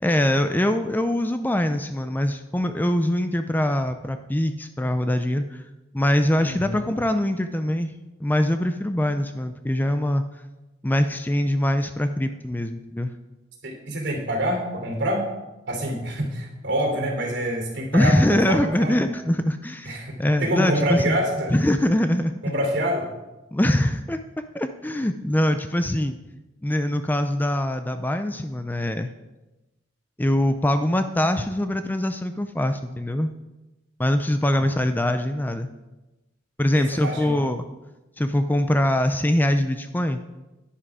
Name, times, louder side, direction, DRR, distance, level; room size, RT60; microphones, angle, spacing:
voice 1, 0.0-5.6 5.9-7.9 8.2-10.2 10.8-13.1 17.9-21.2 21.5-22.3 23.5-24.2 24.5-26.2 26.6-29.1 30.2-33.3 34.0-35.7 36.6-37.7 38.2-40.2, left 1 dB, 10° left, 9 dB, 0.4 m, -23 dB
voice 2, 6.4-6.8 13.6-15.2 15.7-19.0 19.8-21.5 22.4-23.1 34.6-34.7 35.1-35.2 36.7-37.3, right 1 dB, 65° right, 2 dB, 3.2 m, -26 dB
11.0 x 10.0 x 4.9 m, 1.0 s
head